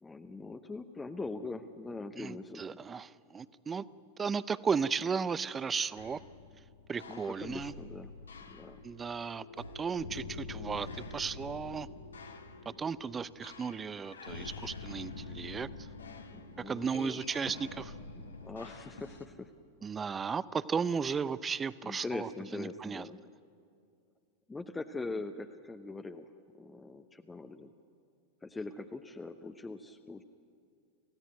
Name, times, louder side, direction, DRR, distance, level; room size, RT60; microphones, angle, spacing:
voice 1, 0.0-2.8 7.1-8.1 8.5-8.8 16.3-17.2 18.1-19.5 19.9-20.1 21.8-23.2 24.5-26.3 26.6-27.7 28.4-30.2, left 3 dB, 10° left, 7 dB, 0.9 m, -42 dB
voice 2, 2.2-3.8 4.2-6.2 6.9-7.7 8.8-9.5 9.7-11.9 12.8-15.7 16.6-17.9 19.8-23.0, right 6 dB, 20° right, 18 dB, 0.7 m, -35 dB
sound 1, 6.0-19.3, left 4 dB, 75° left, 1.6 m, -46 dB
28.5 x 16.0 x 9.3 m, 2.4 s
figure-of-eight pair, 90°, 0 cm